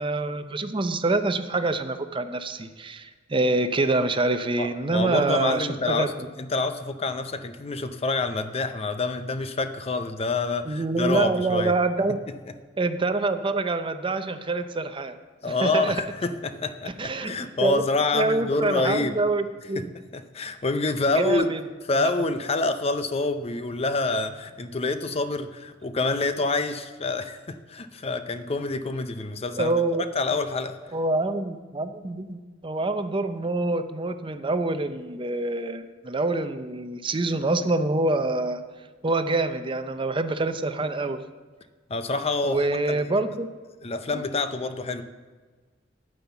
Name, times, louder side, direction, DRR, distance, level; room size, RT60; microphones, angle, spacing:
voice 1, 0.0-6.1 10.7-12.2 12.8-15.1 15.5-16.0 17.0-17.3 17.6-17.8 18.1-19.9 21.2-21.6 21.9-22.1 29.6-30.1 30.9-38.6 39.0-41.2 42.4-43.5 44.1-44.2, right 2 dB, 25° right, 9 dB, 0.6 m, -26 dB
voice 2, 4.6-11.7 15.4-19.2 19.7-21.5 21.9-29.7 30.1-30.8 41.9-43.0 43.8-45.0, left 3 dB, 35° left, 9 dB, 0.6 m, -27 dB
9.3 x 9.0 x 7.0 m, 1.4 s
head